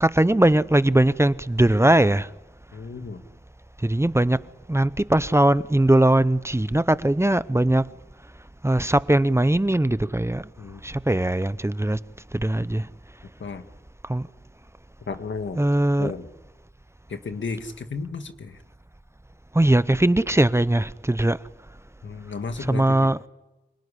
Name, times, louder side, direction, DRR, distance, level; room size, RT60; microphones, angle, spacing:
voice 1, 0.0-2.3 3.8-4.4 4.7-7.9 8.6-10.5 10.8-12.0 12.3-12.9 14.0-14.3 15.6-16.1 19.5-21.4 22.6-23.2, right 1 dB, 15° right, 0.8 m, -20 dB
voice 2, 2.7-3.2 10.6-10.8 13.4-13.6 15.1-15.6 16.0-16.3 17.1-18.6 22.0-23.1, left 4 dB, 90° left, 1.8 m, -33 dB
26.0 x 18.5 x 10.0 m
cardioid pair, 45°, 19 cm